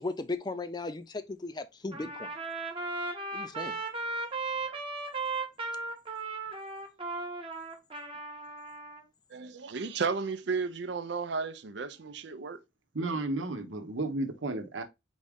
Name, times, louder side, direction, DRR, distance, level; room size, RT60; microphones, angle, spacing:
voice 1, 0.0-2.3 3.3-3.8, left 2 dB, 20° left, 0.4 m, -36 dB
Trumpet, 1.9-9.0, right 3 dB, 25° right, 0.9 m, -36 dB
voice 2, 9.3-12.6, right 5 dB, 60° right, 0.5 m, -33 dB
voice 3, 12.9-14.8, right 2 dB, 80° right, 0.9 m, -33 dB
4.0 x 3.6 x 3.5 m
head